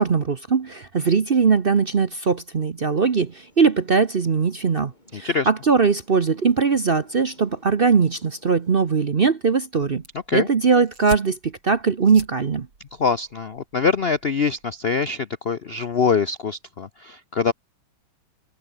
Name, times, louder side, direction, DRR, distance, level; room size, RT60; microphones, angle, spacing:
voice 1, 0.0-10.0 10.3-12.7, right 5 dB, 45° right, 0.7 m, -20 dB
sound 1, 3.0-9.6, left 1 dB, 20° left, 8.0 m, -56 dB
voice 2, 5.1-5.5 10.3-10.5 13.0-17.5, left 5 dB, 90° left, 0.5 m, -23 dB
sound 2, 9.8-14.8, right 3 dB, 80° right, 6.2 m, -42 dB
omnidirectional pair, 2.3 m